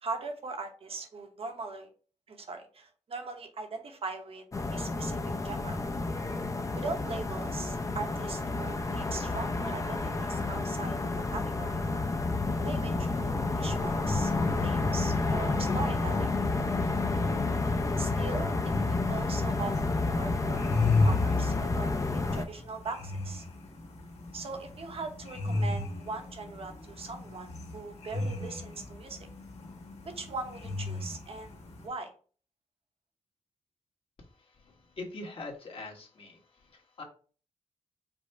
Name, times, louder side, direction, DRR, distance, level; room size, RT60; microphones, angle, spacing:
voice 1, 0.0-1.9 2.3-4.4 4.7-5.8 6.7-11.8 12.6-14.3 14.6-16.3 18.0-18.5 18.9-23.5 24.3-29.3 30.1-31.5 31.8-32.1, right 3 dB, 55° right, 6 dB, 0.9 m, -40 dB
sound 1, 4.5-22.5, left 3 dB, 30° left, 0.5 m, -30 dB
sound 2, 19.6-31.9, left 3 dB, 70° left, 1.5 m, -34 dB
voice 2, 35.0-36.4 36.7-37.0, left 2 dB, 50° left, 1 dB, 1.3 m, -42 dB
5.2 x 2.1 x 4.4 m, 0.40 s
cardioid pair, 95°, 12 cm